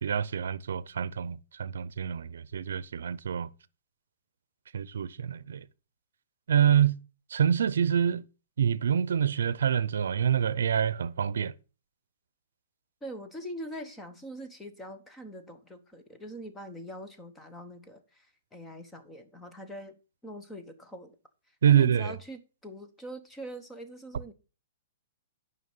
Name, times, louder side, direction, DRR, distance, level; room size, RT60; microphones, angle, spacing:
voice 1, 0.0-3.5 4.7-5.6 6.5-6.9 7.3-8.3 8.6-11.5 21.6-22.2, right 8 dB, 85° right, 0.6 m, -26 dB
voice 2, 13.0-20.0 20.2-21.2 21.7-24.3, equal, 10° left, 1.0 m, -43 dB
9.4 x 5.7 x 5.5 m
hypercardioid pair, 160°, 0 cm